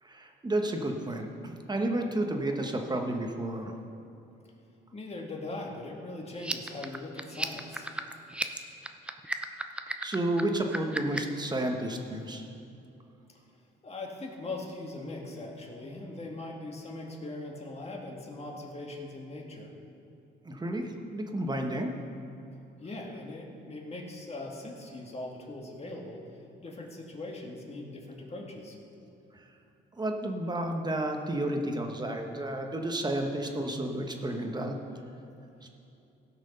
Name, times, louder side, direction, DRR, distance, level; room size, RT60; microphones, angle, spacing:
voice 1, 0.0-3.8 10.0-12.5 20.4-21.9 29.3-29.4 30.0-34.8 35.6-35.7, right 1 dB, 20° right, 3 dB, 1.3 m, -31 dB
voice 2, 4.9-7.9 13.3-13.4 13.8-19.7 22.8-26.2 26.6-28.8, left 2 dB, 30° left, 0 dB, 2.0 m, -40 dB
sound 1, 6.3-11.4, right 1 dB, 5° right, 0.6 m, -35 dB
17.0 x 6.2 x 5.5 m, 2.7 s
cardioid pair, 90°, 20 cm